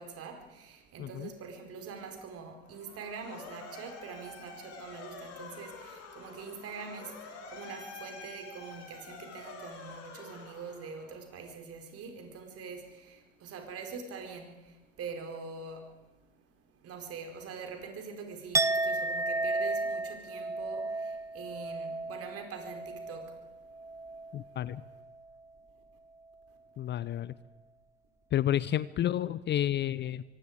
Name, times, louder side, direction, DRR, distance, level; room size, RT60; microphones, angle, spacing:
voice 1, 0.0-15.8 16.8-23.3, right 5 dB, 45° right, 4 dB, 4.6 m, -44 dB
voice 2, 1.0-1.3 24.3-24.8 26.8-27.3 28.3-30.2, left 11 dB, 35° left, 19 dB, 0.7 m, -30 dB
Motor vehicle (road) / Siren, 2.6-11.2, left 4 dB, 50° left, 7.9 m, -48 dB
Chink clink, 18.5-24.5 24.8-25.2, right 2 dB, 10° right, 0.6 m, -33 dB
25.0 x 24.5 x 5.1 m, 1.1 s
figure-of-eight pair, 65°, 33 cm